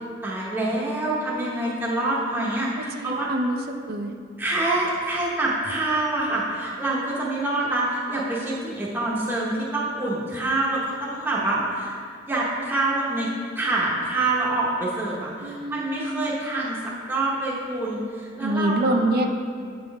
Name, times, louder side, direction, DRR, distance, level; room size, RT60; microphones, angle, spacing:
voice 1, 0.2-3.3 4.4-12.0 12.3-13.3 13.6-16.8 17.1-19.0, right 2 dB, 10° right, -5 dB, 0.8 m, -26 dB
voice 2, 3.0-4.1 15.4-16.3 18.4-19.3, right 1 dB, 50° right, 5 dB, 0.5 m, -26 dB
7.7 x 3.9 x 5.2 m, 2.2 s
head